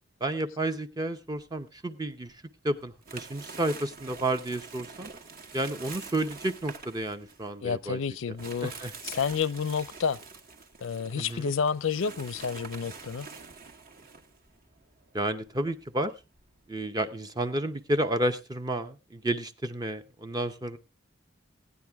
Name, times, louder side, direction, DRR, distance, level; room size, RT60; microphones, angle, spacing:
voice 1, 0.2-2.3 2.6-5.1 5.5-8.0 8.6-8.9 11.1-11.5 15.1-16.1 16.7-20.8, right 1 dB, 20° right, 0.7 m, -31 dB
sound 1, 1.3-2.3 2.7-16.8, right 4 dB, 50° right, 1.4 m, -46 dB
voice 2, 7.6-8.7 9.0-10.2 10.8-13.3, left 6 dB, 85° left, 0.5 m, -30 dB
16.5 x 9.6 x 3.4 m
head